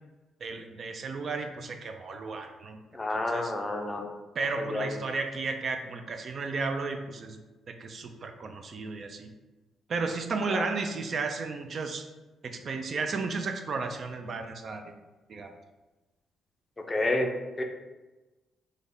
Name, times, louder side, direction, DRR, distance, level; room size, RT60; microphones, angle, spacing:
voice 1, 0.4-2.8 3.1-3.5 4.4-7.4 7.8-9.3 9.9-12.1 12.4-14.9 15.3-15.5, right 4 dB, 50° right, 6 dB, 0.3 m, -33 dB
voice 2, 2.9-4.1 4.6-4.9 10.5-10.7 16.9-17.3 17.6-17.7, left 2 dB, 20° left, 3 dB, 0.4 m, -29 dB
3.3 x 2.1 x 3.7 m, 1.1 s
cardioid pair, 90°, 0 cm